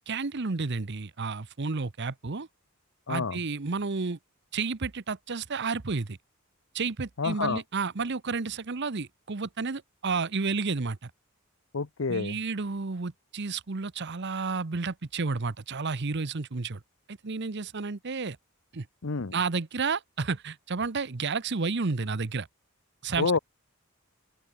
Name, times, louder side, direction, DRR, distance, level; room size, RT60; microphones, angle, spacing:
voice 1, 0.0-2.5 3.1-4.2 4.5-6.2 6.7-11.1 12.1-16.8 17.1-18.4 18.7-18.9 19.3-22.5 23.0-23.3, right 4 dB, 55° right, 0.9 m, -31 dB
voice 2, 3.1-3.4 7.2-7.6 11.7-12.4 19.0-19.3 23.2-23.4, left 4 dB, 65° left, 0.8 m, -28 dB
open air
head